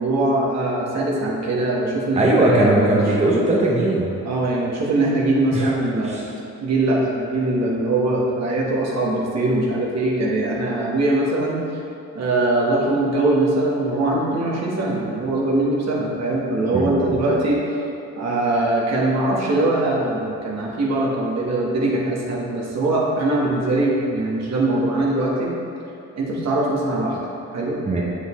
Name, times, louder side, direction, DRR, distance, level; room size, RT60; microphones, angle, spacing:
voice 1, 0.0-2.9 4.2-6.2 6.6-11.6 12.1-17.6 18.2-25.5 26.1-27.2 27.5-27.8, right 2 dB, 60° right, -3 dB, 1.5 m, -21 dB
voice 2, 2.2-4.1 5.5-5.7 6.0-6.3 16.7-17.2 27.8-28.0, right 2 dB, 20° right, -3 dB, 0.9 m, -19 dB
7.4 x 6.4 x 3.2 m, 2.7 s
cardioid pair, 90°, 30 cm